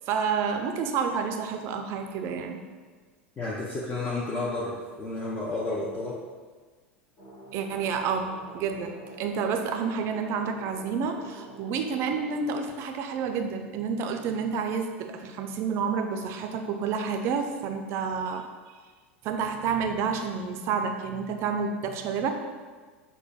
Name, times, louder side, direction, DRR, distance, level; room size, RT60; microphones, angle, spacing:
voice 1, 0.1-2.6 7.5-18.5 19.2-22.3, right 6 dB, 40° right, 5 dB, 0.4 m, -29 dB
voice 2, 3.4-6.1, left 2 dB, 25° left, -6 dB, 0.5 m, -31 dB
sound 1, 7.2-12.4, right 1 dB, 50° left, 1.0 m, -47 dB
5.5 x 2.1 x 2.3 m, 1.4 s
figure-of-eight pair, 80°, 7 cm